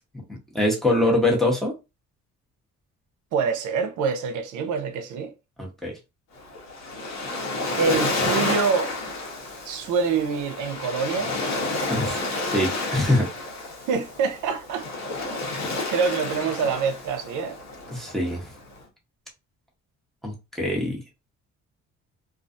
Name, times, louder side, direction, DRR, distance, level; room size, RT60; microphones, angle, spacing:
voice 1, 0.3-1.8 5.6-6.0 11.9-13.3 17.9-18.5 20.2-21.0, left 1 dB, ahead, 1.0 m, -24 dB
voice 2, 3.3-5.3 7.8-8.9 9.6-11.4 13.9-14.9 15.9-17.6, right 5 dB, 80° right, 0.6 m, -25 dB
Waves surf, 6.4-18.8, left 2 dB, 60° left, 1.0 m, -30 dB
2.3 x 2.3 x 2.5 m
cardioid pair, 90°, 30 cm